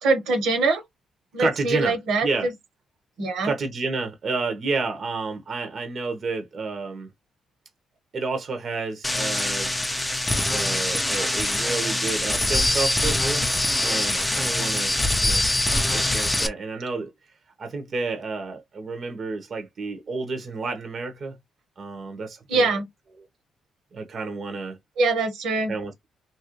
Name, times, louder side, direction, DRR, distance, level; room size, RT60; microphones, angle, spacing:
voice 1, 0.0-0.8 1.3-2.5 3.2-3.5 22.5-22.9 25.0-25.7, right 3 dB, 85° right, 1.2 m, -23 dB
voice 2, 1.4-1.9 2.2-2.5 3.4-7.1 8.1-9.7 10.5-13.5 13.8-14.9 15.2-15.4 15.9-17.1 17.6-21.4 21.8-22.8 23.9-24.8 25.7-26.1, right 4 dB, 45° right, 0.9 m, -30 dB
sound 1, 9.0-16.5, left 1 dB, 10° left, 0.7 m, -24 dB
3.0 x 2.5 x 3.0 m
cardioid pair, 90°, 0 cm